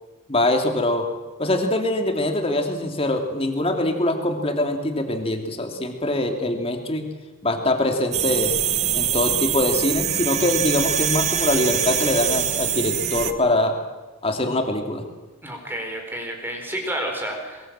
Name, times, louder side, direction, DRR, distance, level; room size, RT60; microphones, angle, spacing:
voice 1, 0.3-1.1 1.4-7.1 7.4-8.5 8.9-13.7 14.2-15.0, left 1 dB, 25° left, 5 dB, 2.7 m, -23 dB
sound 1, 8.1-13.3, right 9 dB, 35° right, 1.2 m, -24 dB
voice 2, 15.4-17.7, right 1 dB, 10° right, 2 dB, 4.3 m, -30 dB
23.0 x 22.5 x 7.6 m, 1.2 s
head